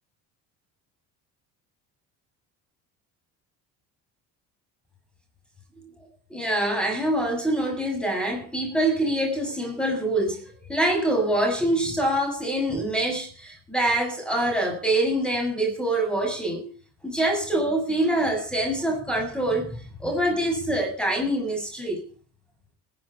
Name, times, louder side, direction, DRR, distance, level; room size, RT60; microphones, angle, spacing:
voice 1, 6.3-16.6 17.0-19.7 20.0-22.0, right 1 dB, ahead, 7.2 m, -25 dB
16.0 x 8.2 x 7.2 m
supercardioid pair, 70°, 44 cm